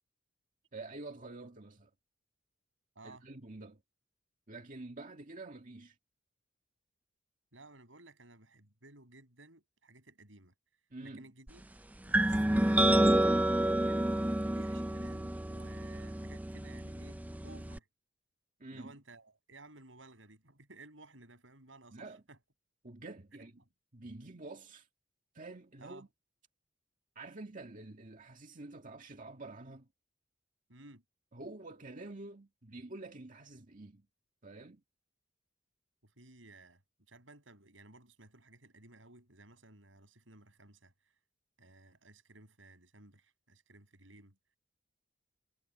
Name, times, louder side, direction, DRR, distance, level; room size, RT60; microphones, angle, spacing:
voice 1, 0.7-1.9 3.0-3.8 4.5-6.0 10.9-11.3 18.6-18.9 21.9-22.2 22.8-23.6 23.9-24.9 25.3-26.1 27.2-29.9 31.3-34.1 34.4-34.8, right 2 dB, 45° right, 1.9 m, -48 dB
voice 2, 7.5-10.5 11.0-11.6 12.1-13.0 13.8-17.9 18.7-22.4 23.4-23.5 25.8-26.1 30.7-31.0 36.0-36.8 37.1-40.9 41.6-44.3, right 2 dB, 85° right, 7.8 m, -56 dB
sound 1, 12.1-17.8, right 1 dB, 10° right, 0.5 m, -29 dB
head